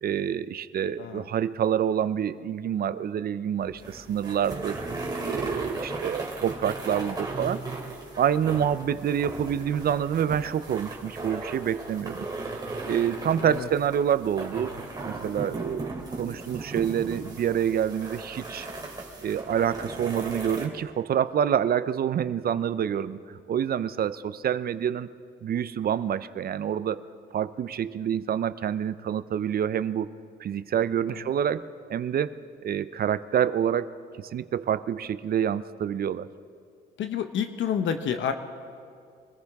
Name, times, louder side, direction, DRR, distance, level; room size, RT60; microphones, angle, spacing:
voice 1, 0.0-4.8 5.2-7.6 8.2-12.3 12.9-14.8 15.1-18.7 19.2-25.1 25.4-27.0 27.3-30.1 30.4-31.6 31.9-32.3 32.6-36.3, right 9 dB, 50° right, 15 dB, 0.5 m, -27 dB
sound 1, 3.6-20.7, right 2 dB, 20° right, 2.6 m, -36 dB
voice 2, 13.4-13.7 31.1-31.3 37.0-38.3, left 8 dB, 70° left, 9 dB, 0.8 m, -29 dB
24.0 x 14.5 x 3.5 m, 2.3 s
cardioid pair, 90°, 20 cm